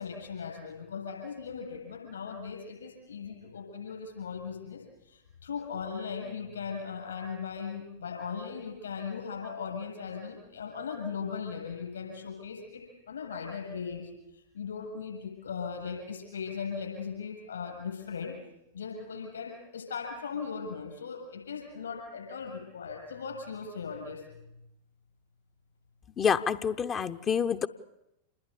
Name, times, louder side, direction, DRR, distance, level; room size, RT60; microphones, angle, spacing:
voice 1, 0.0-14.1 14.5-18.3 18.7-24.2, left 6 dB, 70° left, 1 dB, 7.6 m, -38 dB
voice 2, 26.2-27.7, left 7 dB, 25° left, 8 dB, 0.8 m, -27 dB
28.0 x 20.5 x 8.3 m, 0.88 s
figure-of-eight pair, 90°, 0 cm